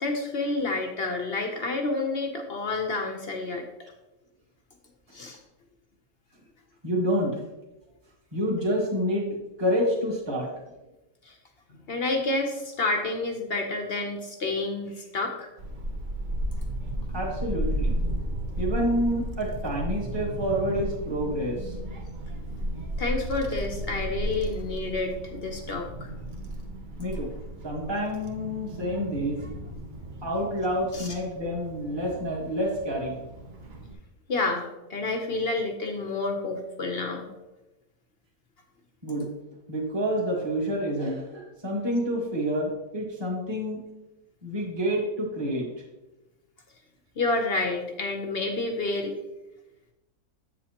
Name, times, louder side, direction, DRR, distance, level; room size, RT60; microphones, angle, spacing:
voice 1, 0.0-3.6 5.1-5.4 11.3-11.4 11.9-15.5 23.0-26.1 30.9-31.1 34.3-37.3 47.2-49.1, left 3 dB, 50° left, 4 dB, 0.8 m, -29 dB
voice 2, 6.8-7.4 8.3-9.3 9.6-10.5 17.1-18.0 18.6-21.7 27.0-27.3 27.6-29.4 30.2-33.2 39.0-39.3 39.7-43.8 44.4-45.7, equal, 15° right, -3 dB, 1.5 m, -28 dB
Child speech kid speaking / Wind, 15.6-33.9, right 1 dB, 40° right, 0.7 m, -34 dB
7.9 x 7.4 x 2.9 m, 1.0 s
omnidirectional pair, 1.6 m